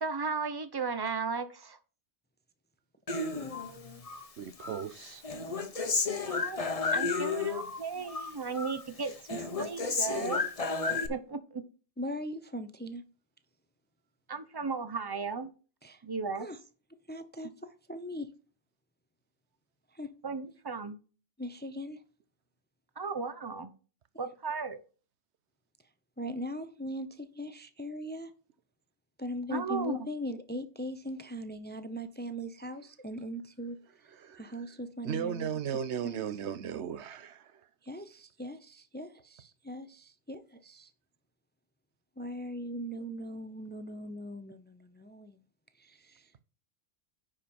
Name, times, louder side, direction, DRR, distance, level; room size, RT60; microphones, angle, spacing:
voice 1, 0.0-1.8 6.3-6.6 6.9-10.5 11.1-11.6 14.3-15.5 16.0-16.5 20.2-21.0 23.0-23.7 24.2-24.8 29.5-30.1, right 4 dB, 25° right, 0.8 m, -35 dB
Human voice, 3.1-4.2 4.6-7.8 8.1-8.8 9.1-11.1, left 4 dB, 35° left, 1.0 m, -32 dB
voice 2, 4.4-5.2 7.4-7.6 8.2-8.3 34.1-34.7 35.0-37.7, right 8 dB, 90° right, 1.0 m, -37 dB
voice 3, 12.0-13.0 15.8-16.0 16.4-16.6 17.1-18.3 19.9-20.1 21.4-22.0 26.2-28.3 29.2-33.8 34.4-35.5 36.0-36.2 37.8-40.9 42.2-45.4 45.8-46.3, equal, 15° left, 0.5 m, -40 dB
9.8 x 5.1 x 4.3 m
omnidirectional pair, 1.1 m